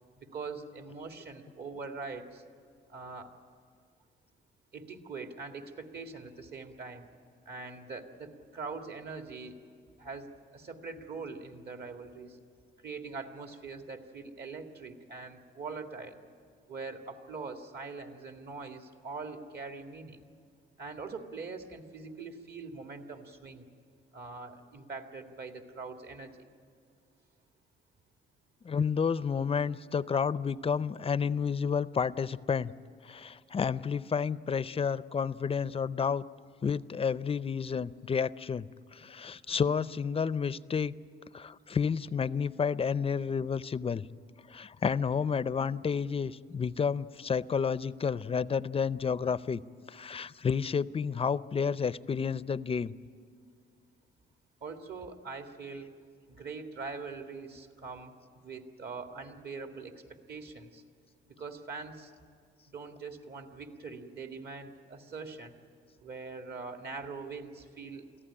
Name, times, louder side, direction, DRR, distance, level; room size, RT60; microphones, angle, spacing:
voice 1, 0.2-2.4 2.9-3.3 4.7-7.1 7.5-9.6 10.0-12.4 12.8-16.2 16.7-20.2 20.8-23.7 24.1-26.4 54.6-55.9 56.3-59.9 60.3-60.8 61.4-62.1 62.7-65.6 66.0-68.0, right 4 dB, 55° right, 5 dB, 2.0 m, -43 dB
voice 2, 28.6-32.7 33.0-36.3 36.6-40.9 41.3-44.0 44.5-49.6 49.9-52.9, left 6 dB, 30° left, 17 dB, 0.5 m, -30 dB
23.5 x 15.5 x 9.9 m, 2.2 s
cardioid pair, 90°, 20 cm